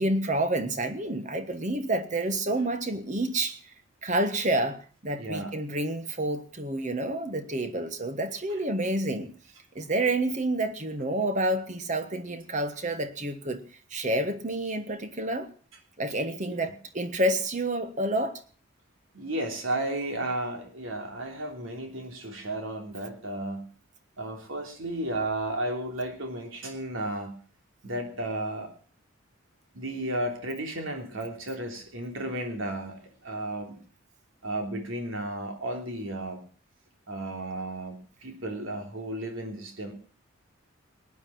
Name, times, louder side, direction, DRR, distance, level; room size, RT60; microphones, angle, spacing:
voice 1, 0.0-3.6 4.0-9.3 9.7-13.6 13.9-15.5 16.0-18.4, right 1 dB, 35° right, 9 dB, 1.4 m, -29 dB
voice 2, 5.1-5.5 8.5-8.6 16.4-16.6 19.1-23.6 24.2-27.3 27.8-28.7 29.7-33.8 34.4-36.4 37.1-39.9, right 1 dB, 75° right, 4 dB, 3.3 m, -33 dB
19.0 x 9.8 x 5.9 m, 0.42 s
head